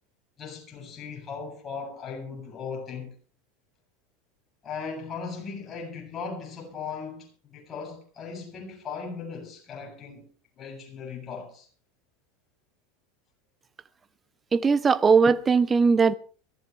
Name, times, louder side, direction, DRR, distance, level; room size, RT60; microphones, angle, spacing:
voice 1, 0.4-3.1 4.6-10.3 10.6-11.7, left 5 dB, 30° left, 7.5 m, -38 dB
voice 2, 14.5-16.1, right 5 dB, 20° right, 0.9 m, -19 dB
22.5 x 14.5 x 3.3 m
supercardioid pair, 115°, 0 cm